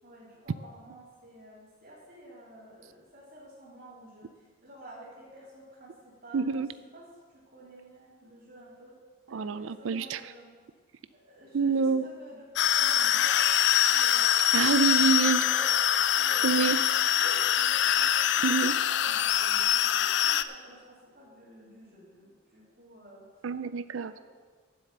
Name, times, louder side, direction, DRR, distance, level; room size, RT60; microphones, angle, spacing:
voice 1, 0.0-6.7 6.9-7.0 7.3-9.0 9.3-10.5 11.1-13.4 13.9-14.9 15.4-15.7 16.1-18.5 18.9-23.3 24.1-24.2, equal, 40° right, -12 dB, 3.3 m, -50 dB
voice 2, 6.3-6.7 9.3-10.2 11.5-12.1 14.5-15.4 16.4-16.8 18.4-18.8 23.4-24.1, right 5 dB, 70° right, 13 dB, 0.4 m, -26 dB
sound 1, 12.6-20.4, left 10 dB, 60° left, 0.4 m, -24 dB
9.8 x 7.7 x 7.7 m, 1.5 s
head